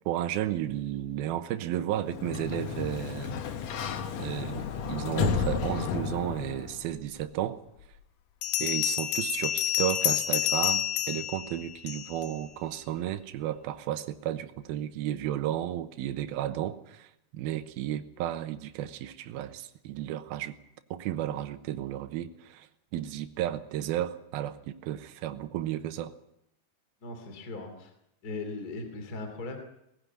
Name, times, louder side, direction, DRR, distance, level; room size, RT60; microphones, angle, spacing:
voice 1, 0.1-3.4 4.2-7.6 8.6-17.1 17.3-20.6 20.9-22.7 22.9-26.1, right 12 dB, 80° right, 9 dB, 2.8 m, -33 dB
Sliding door, 2.0-6.8, left 6 dB, 60° left, 1.9 m, -32 dB
Bell, 7.2-7.3 8.4-12.3, left 12 dB, 90° left, 3.0 m, -29 dB
voice 2, 27.0-27.9 28.2-29.6, left 3 dB, 25° left, 6 dB, 2.7 m, -38 dB
19.0 x 15.5 x 9.4 m, 0.80 s
omnidirectional pair, 4.5 m